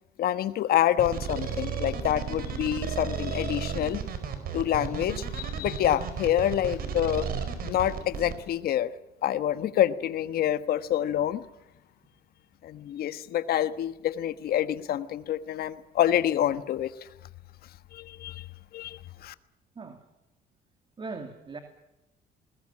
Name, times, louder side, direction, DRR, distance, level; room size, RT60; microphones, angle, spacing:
voice 1, 0.2-4.0 4.5-7.3 7.6-8.9 9.2-11.4 12.6-16.9 17.9-18.4 18.7-19.3, left 11 dB, 65° left, 13 dB, 1.4 m, -27 dB
sound 1, 1.0-8.3, right 7 dB, 60° right, 4.8 m, -33 dB
voice 2, 21.0-21.6, right 4 dB, 30° right, 6 dB, 2.6 m, -39 dB
20.5 x 20.0 x 8.7 m, 0.93 s
cardioid pair, 110°, 17 cm